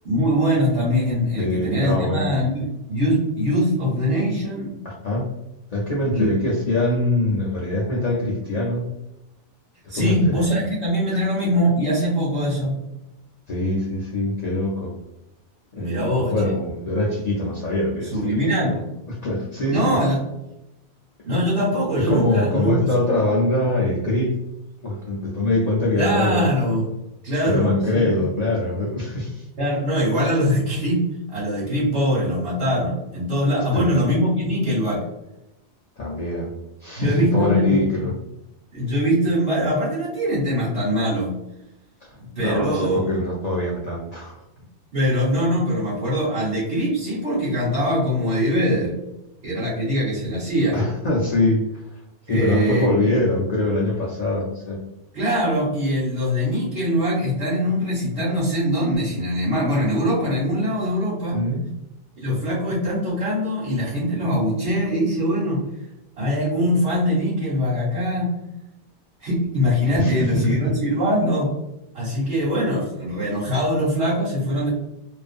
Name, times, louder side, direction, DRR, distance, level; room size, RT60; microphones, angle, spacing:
voice 1, 0.0-4.8 6.1-6.3 9.9-12.8 15.8-16.5 18.1-18.8 19.7-20.2 21.2-22.8 26.0-26.9 27.2-28.0 29.6-35.0 37.0-38.1 38.7-41.4 42.3-43.0 44.9-48.9 49.4-50.8 52.3-52.9 55.1-61.4 62.2-65.6 66.2-68.3 69.2-71.5 71.9-74.7, equal, 70° right, -9 dB, 1.2 m, -22 dB
voice 2, 1.4-2.3 4.8-5.2 5.7-8.9 9.9-10.4 13.5-14.9 15.7-18.4 19.1-20.0 21.9-24.4 24.8-26.5 27.5-29.5 33.7-34.0 36.0-36.5 36.8-38.1 42.0-42.1 42.4-44.4 50.7-51.8 52.3-54.8 61.3-61.6 69.9-70.8, left 1 dB, 55° left, -4 dB, 0.4 m, -23 dB
2.4 x 2.4 x 2.4 m, 0.89 s
omnidirectional pair, 1.2 m